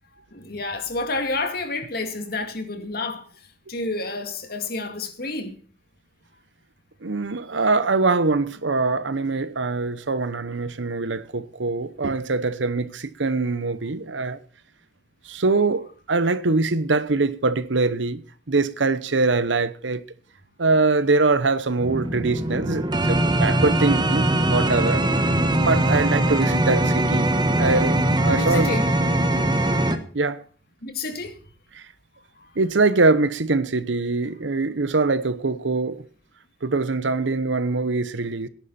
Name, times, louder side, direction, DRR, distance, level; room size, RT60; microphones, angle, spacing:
voice 1, 0.3-3.3 3.7-5.6 28.3-28.9 30.8-31.4 32.4-32.5, left 3 dB, 55° left, 2.3 m, -29 dB
voice 2, 7.0-14.4 15.3-18.2 18.5-20.0 20.6-25.1 25.6-27.3 27.6-28.8 30.1-30.4 31.7-31.8 32.6-36.0 36.6-38.5, right 3 dB, 85° right, 1.0 m, -23 dB
sound 1, 21.8-30.0, right 1 dB, 25° right, 1.2 m, -21 dB
18.5 x 10.5 x 4.4 m
head